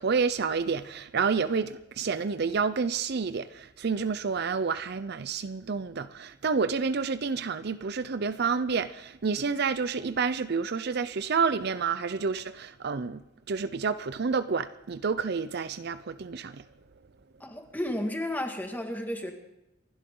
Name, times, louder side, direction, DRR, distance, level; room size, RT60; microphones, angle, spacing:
voice 1, 0.0-16.6, right 5 dB, 55° right, 0.6 m, -29 dB
voice 2, 17.4-19.3, left 1 dB, 10° left, 1.9 m, -32 dB
28.0 x 11.5 x 3.8 m
head